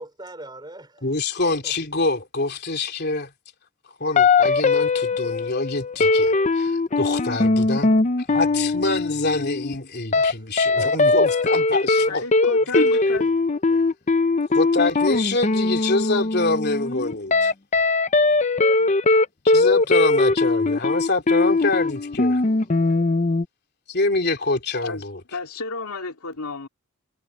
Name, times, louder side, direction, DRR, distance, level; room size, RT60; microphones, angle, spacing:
voice 1, 0.0-1.1 1.4-1.7 10.1-11.2, right 1 dB, 20° right, 5.1 m, -41 dB
voice 2, 1.0-3.3 4.0-7.9 8.3-12.2 12.7-12.9 13.1-13.3 14.5-17.5 19.4-22.4 23.9-25.2, left 2 dB, 50° left, 3.3 m, -25 dB
sound 1, 4.2-9.7 10.1-10.3 10.6-23.4, left 3 dB, 35° left, 0.6 m, -20 dB
voice 3, 12.1-13.2 24.8-25.0 25.3-26.7, left 3 dB, 85° left, 2.8 m, -32 dB
head